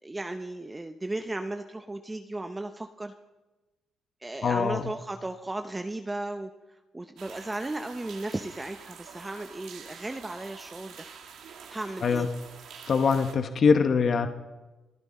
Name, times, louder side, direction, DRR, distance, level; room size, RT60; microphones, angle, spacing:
voice 1, 0.0-3.1 4.2-11.1 11.7-12.3, right 2 dB, 15° right, 7 dB, 0.7 m, -35 dB
voice 2, 4.4-4.8 12.0-12.3 12.9-14.3, left 5 dB, 50° left, 7 dB, 0.9 m, -23 dB
sound 1, 7.2-13.4, right 6 dB, 80° right, 2.1 m, -47 dB
29.5 x 10.5 x 4.2 m, 1.1 s
cardioid pair, 90°, 0 cm